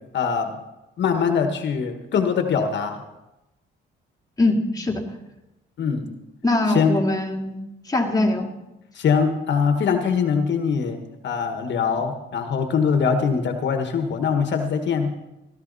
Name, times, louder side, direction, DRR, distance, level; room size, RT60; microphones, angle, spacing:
voice 1, 0.1-0.5 1.0-3.0 5.8-6.1 6.7-6.9 8.9-11.0 11.2-15.1, left 6 dB, 65° left, 6 dB, 1.5 m, -22 dB
voice 2, 4.4-5.1 6.4-7.6 7.9-8.5, left 2 dB, 20° left, 1 dB, 2.2 m, -22 dB
16.5 x 12.5 x 4.1 m, 0.94 s
cardioid pair, 90°, 20 cm